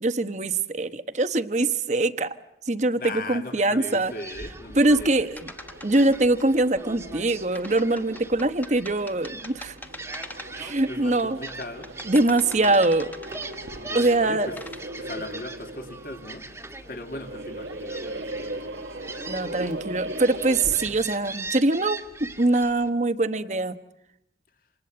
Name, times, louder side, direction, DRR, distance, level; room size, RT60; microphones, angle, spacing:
voice 1, 0.0-2.3 2.7-4.1 4.8-5.4 5.8-9.7 10.6-11.4 12.1-13.1 13.9-14.5 19.3-23.8, right 2 dB, 40° right, 10 dB, 1.1 m, -23 dB
voice 2, 3.0-5.3 10.9-11.9 13.7-14.6 15.0-16.5 16.9-18.7, left 2 dB, 50° left, 5 dB, 2.6 m, -38 dB
Gull seagull, 3.8-22.9, right 3 dB, 15° right, 1.8 m, -41 dB
sound 1, 5.4-6.4 7.5-10.7 11.2-13.7 14.3-14.8, left 2 dB, 10° left, 1.1 m, -42 dB
sound 2, 5.5-21.2, right 1 dB, 70° right, 1.6 m, -39 dB
28.5 x 27.0 x 7.8 m, 0.80 s
head